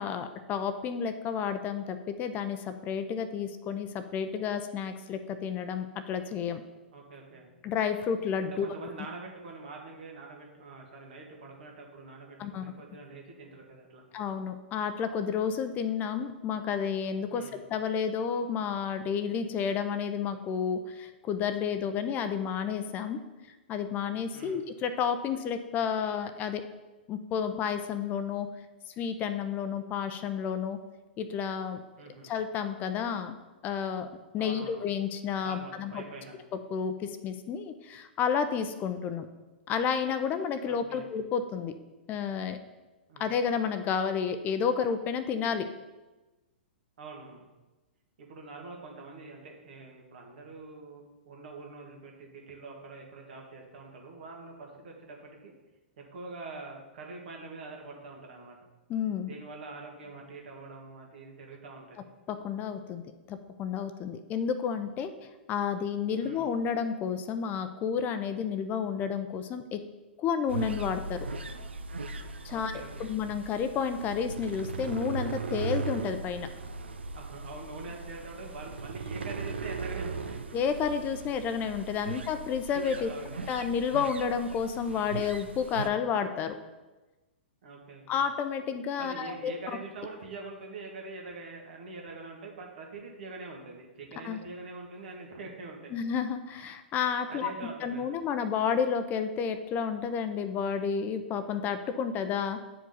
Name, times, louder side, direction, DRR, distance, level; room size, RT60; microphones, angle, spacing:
voice 1, 0.0-6.6 7.6-8.7 12.4-12.6 14.1-23.2 23.7-26.6 27.1-28.5 29.0-30.8 31.2-31.8 32.2-33.4 33.6-34.1 34.3-36.0 36.7-39.3 39.7-41.7 42.1-42.6 43.2-45.7 58.9-59.3 62.3-63.0 63.3-65.1 65.5-69.8 70.2-71.3 72.4-76.5 80.5-83.1 83.5-86.6 88.1-89.5 94.2-94.4 95.9-97.5 97.8-102.6, left 7 dB, 30° left, 9 dB, 0.6 m, -31 dB
voice 2, 6.9-7.5 8.4-14.0 17.3-17.6 24.3-24.6 32.0-32.3 34.4-35.0 35.4-36.4 40.6-41.1 43.1-43.3 47.0-47.4 48.2-55.5 56.0-58.6 59.2-62.1 66.2-66.5 72.5-73.2 77.1-80.6 82.0-82.2 82.9-83.4 87.6-88.2 89.0-95.9 97.3-98.2, right 3 dB, 65° right, 0 dB, 1.9 m, -44 dB
sound 1, 70.5-85.9, right 4 dB, 85° right, 0.5 m, -38 dB
9.0 x 4.9 x 4.0 m, 1.1 s
hypercardioid pair, 115°, 6 cm